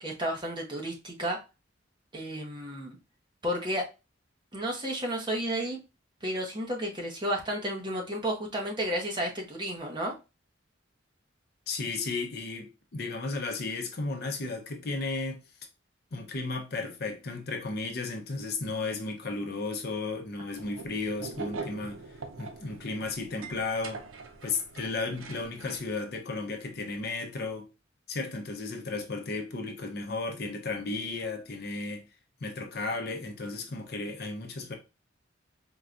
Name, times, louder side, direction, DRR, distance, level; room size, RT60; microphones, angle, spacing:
voice 1, 0.0-1.4 2.1-3.0 3.4-3.9 4.5-5.8 6.2-10.1, equal, 25° right, 0.8 m, -32 dB
voice 2, 11.7-15.4 16.1-24.0 24.4-27.7 28.1-32.0 32.4-34.7, left 3 dB, 55° left, 0.7 m, -34 dB
sound 1, 20.6-25.9, right 4 dB, 85° right, 0.6 m, -42 dB
4.5 x 2.2 x 2.5 m
head